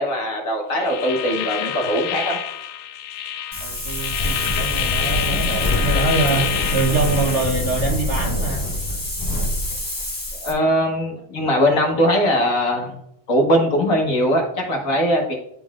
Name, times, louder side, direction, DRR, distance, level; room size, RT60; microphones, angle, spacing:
voice 1, 0.0-2.4 10.4-12.9 13.3-15.3, equal, 50° left, 1 dB, 1.3 m, -20 dB
sound 1, 0.7-7.5, left 10 dB, 80° left, 1.3 m, -27 dB
Wind, 3.5-10.5, left 1 dB, 15° left, 0.7 m, -25 dB
voice 2, 3.6-8.7, right 3 dB, 55° right, -1 dB, 0.8 m, -24 dB
11.0 x 3.8 x 2.4 m, 0.76 s
omnidirectional pair, 2.2 m